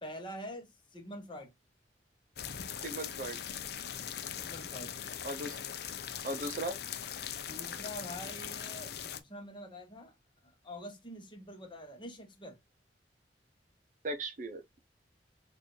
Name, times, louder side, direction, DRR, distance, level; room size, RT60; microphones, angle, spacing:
voice 1, 0.0-1.5 4.0-5.0 7.4-10.1 10.6-12.6, equal, 30° left, 1.1 m, -46 dB
sound 1, 2.4-9.2, left 9 dB, 60° left, 0.6 m, -40 dB
voice 2, 2.8-3.4 5.2-5.6 6.2-6.8 14.0-14.6, right 1 dB, 45° right, 0.7 m, -37 dB
6.5 x 2.6 x 3.1 m
head